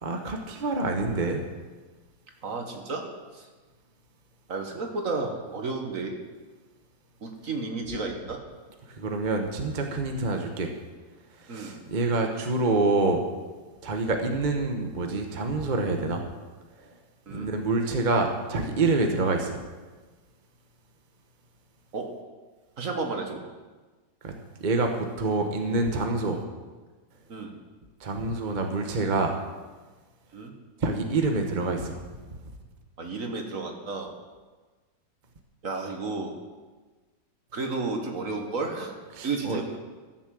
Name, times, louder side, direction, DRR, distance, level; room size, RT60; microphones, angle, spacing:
voice 1, 0.0-1.4 8.9-10.7 11.3-13.3 13.8-16.2 16.8-16.9 17.3-19.6 24.2-24.3 24.6-26.4 28.0-29.4 30.8-32.0 32.4-32.5 39.1-39.6, right 3 dB, 35° right, 3 dB, 0.9 m, -27 dB
voice 2, 2.4-3.5 4.5-6.2 7.2-8.4 11.5-11.8 17.3-17.5 21.9-22.2 22.8-23.4 27.3-27.6 30.3-30.5 33.0-34.1 35.6-36.4 37.5-38.9 39.2-39.8, right 3 dB, 50° right, 3 dB, 1.7 m, -32 dB
13.0 x 7.1 x 7.5 m, 1.3 s
omnidirectional pair, 1.9 m